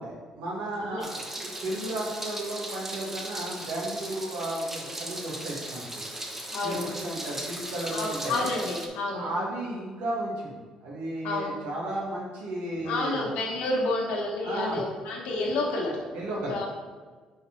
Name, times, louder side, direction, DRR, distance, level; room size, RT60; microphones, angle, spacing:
voice 1, 0.0-6.0 6.6-8.5 9.1-13.3 14.4-14.8 16.1-16.6, right 1 dB, 85° right, -3 dB, 1.7 m, -34 dB
Meow, 1.0-8.9, right 1 dB, 15° right, 0.9 m, -37 dB
voice 2, 6.5-6.9 7.9-9.3 11.2-11.5 12.8-16.0 16.3-16.7, left 2 dB, 85° left, -1 dB, 1.2 m, -30 dB
5.2 x 4.1 x 4.5 m, 1.4 s
cardioid pair, 80°, 2 cm